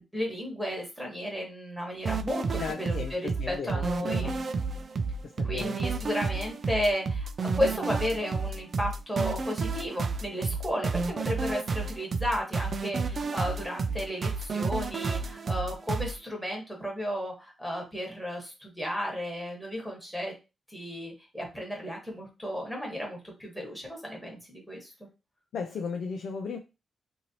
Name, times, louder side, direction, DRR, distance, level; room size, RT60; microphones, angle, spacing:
voice 1, 0.0-3.2 3.5-4.3 5.4-7.3 7.5-20.3 20.7-24.9, equal, ahead, 1.3 m, -33 dB
sound 1, 2.0-16.2, right 4 dB, 50° right, 0.3 m, -31 dB
voice 2, 2.6-4.3 5.2-5.8 25.5-26.6, left 5 dB, 75° left, 0.4 m, -36 dB
3.0 x 2.6 x 2.7 m
cardioid pair, 95°, 0 cm